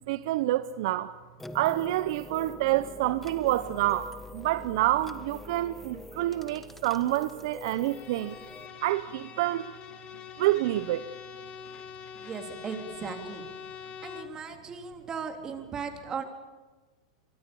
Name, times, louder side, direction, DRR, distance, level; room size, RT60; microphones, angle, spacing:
voice 1, 0.1-1.1 1.5-8.4 8.8-9.6 10.4-11.0, right 15 dB, 65° right, 0.8 m, -27 dB
sound 1, 1.4-8.7, left 2 dB, 5° left, 1.4 m, -45 dB
Bowed string instrument, 7.7-14.4, left 8 dB, 35° left, 2.6 m, -44 dB
voice 2, 12.2-13.4 14.0-16.2, right 6 dB, 25° right, 3.4 m, -37 dB
24.0 x 23.5 x 7.1 m
hypercardioid pair, 115°, 3 cm